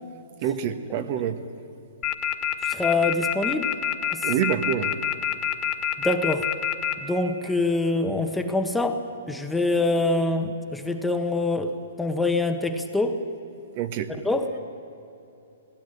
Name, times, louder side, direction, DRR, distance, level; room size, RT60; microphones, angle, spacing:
voice 1, 0.4-1.4 4.2-5.0 13.7-14.1, right 9 dB, 45° right, 7 dB, 1.4 m, -26 dB
sound 1, 2.0-6.9, left 10 dB, 30° left, 2.0 m, -25 dB
voice 2, 2.6-3.7 4.1-4.3 6.0-6.5 7.0-9.0 9.3-13.2 14.2-14.6, left 2 dB, 5° left, 6 dB, 1.3 m, -25 dB
19.0 x 16.5 x 10.0 m, 2.8 s
hypercardioid pair, 125°, 0 cm